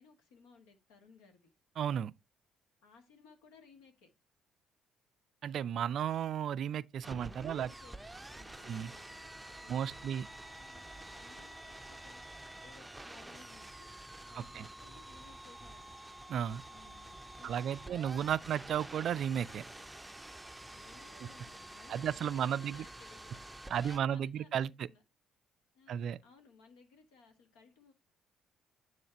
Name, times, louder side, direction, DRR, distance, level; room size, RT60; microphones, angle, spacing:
voice 1, 0.0-1.5 2.8-4.1 7.4-13.9 14.3-15.9 16.7-18.1 18.4-18.7 20.7-23.5 23.7-25.0 25.7-27.9, left 4 dB, 75° left, 1.4 m, -61 dB
voice 2, 1.8-2.1 5.4-7.7 8.7-8.9 9.7-10.3 14.5-14.7 16.3-16.6 17.4-19.6 21.2-21.3 21.9-22.9 23.7-24.9 25.9-26.2, right 9 dB, 55° right, 0.3 m, -34 dB
sound 1, 7.0-24.0, right 1 dB, 10° right, 0.6 m, -49 dB
sound 2, 9.4-20.9, equal, 30° left, 3.0 m, -66 dB
9.3 x 3.2 x 4.2 m
figure-of-eight pair, 50°, 0 cm